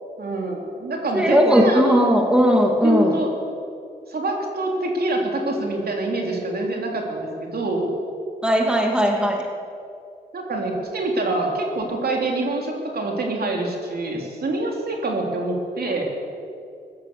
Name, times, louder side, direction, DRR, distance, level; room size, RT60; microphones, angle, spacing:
voice 1, 0.2-2.2 2.8-3.3 4.1-7.9 10.3-16.1, right 2 dB, 60° right, 1 dB, 3.3 m, -25 dB
voice 2, 1.1-3.2 8.4-9.5, equal, 5° right, 1 dB, 2.6 m, -18 dB
16.0 x 13.0 x 7.0 m, 2.5 s
supercardioid pair, 50°, 18 cm